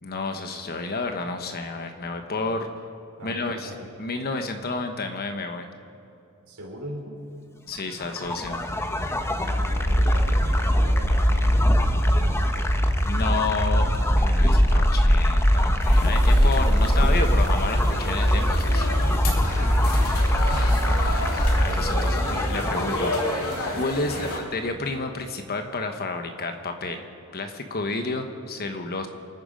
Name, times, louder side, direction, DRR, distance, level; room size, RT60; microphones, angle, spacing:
voice 1, 0.0-2.7 3.2-3.7 4.0-5.7 7.7-8.6 13.1-13.9 14.2-18.9 21.6-23.1 23.7-27.0 27.3-29.1, left 3 dB, 45° left, 6 dB, 1.1 m, -30 dB
voice 2, 3.2-3.9 6.5-7.2 9.4-12.8 20.3-20.8 22.1-23.2 24.1-24.4, equal, 85° right, -2 dB, 3.7 m, -40 dB
sound 1, 8.0-23.7, equal, 10° left, 0.9 m, -21 dB
sound 2, 15.8-24.4, left 1 dB, 75° left, 2.9 m, -31 dB
27.5 x 9.4 x 5.1 m, 2.6 s
head